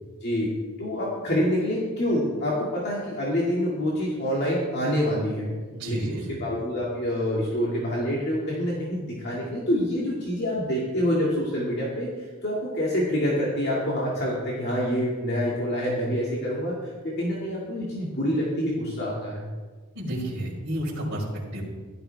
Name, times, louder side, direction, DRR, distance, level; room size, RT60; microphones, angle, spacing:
voice 1, 0.2-0.5 0.8-5.5 5.9-19.5, equal, 50° left, -5 dB, 2.1 m, -27 dB
voice 2, 5.7-6.4 19.9-21.2 21.5-21.6, right 1 dB, 50° right, -8 dB, 3.7 m, -31 dB
15.5 x 12.5 x 3.4 m, 1.4 s
head